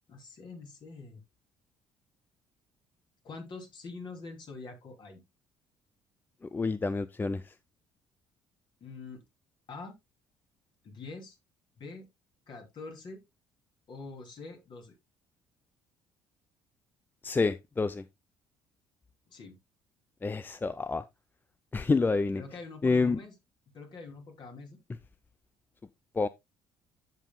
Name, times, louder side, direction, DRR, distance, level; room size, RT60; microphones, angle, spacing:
voice 1, 0.1-1.2 3.2-5.2 8.8-9.2 9.7-10.0 10.8-11.4 11.8-12.1 12.5-13.2 13.9-14.9 19.3-19.6 22.3-23.3 23.7-24.8, left 3 dB, 50° left, 3.0 m, -45 dB
voice 2, 6.5-7.5 17.2-18.0 20.2-21.0 21.7-22.4 22.8-23.2 26.1-26.3, left 4 dB, 20° left, 0.4 m, -28 dB
14.5 x 5.4 x 2.2 m
figure-of-eight pair, 50°, 10 cm